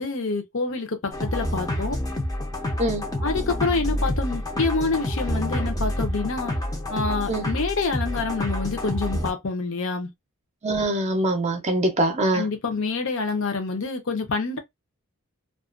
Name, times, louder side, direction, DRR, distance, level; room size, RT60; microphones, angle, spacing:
voice 1, 0.0-2.0 3.2-6.5 6.9-10.1 12.3-14.6, left 4 dB, 60° left, 0.7 m, -27 dB
sound 1, 1.1-9.3, left 1 dB, 15° left, 0.5 m, -28 dB
voice 2, 10.6-12.5, right 1 dB, 30° right, 0.5 m, -23 dB
2.4 x 2.3 x 2.4 m
head